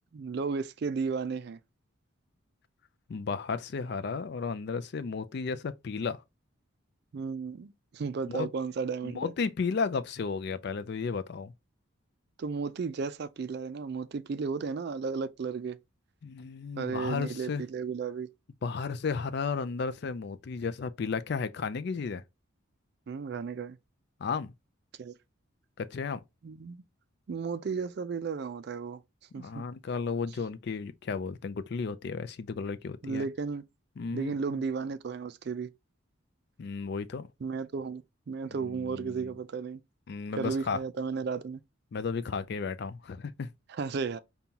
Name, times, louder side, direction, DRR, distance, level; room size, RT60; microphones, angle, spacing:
voice 1, 0.1-1.6 7.1-9.3 12.4-15.8 16.8-18.3 23.1-23.8 25.0-25.1 26.4-26.8 27.3-29.0 29.3-29.6 33.0-33.6 34.1-35.7 37.4-39.8 40.3-41.6 43.7-44.2, right 5 dB, 50° right, 0.3 m, -34 dB
voice 2, 3.1-6.2 8.3-8.5 9.0-11.5 16.2-17.6 18.6-22.2 24.2-24.5 25.8-26.2 29.4-33.3 34.0-34.6 36.6-37.3 38.6-39.3 40.1-40.8 41.9-43.5, left 5 dB, 50° left, 0.4 m, -33 dB
5.3 x 2.3 x 2.8 m
head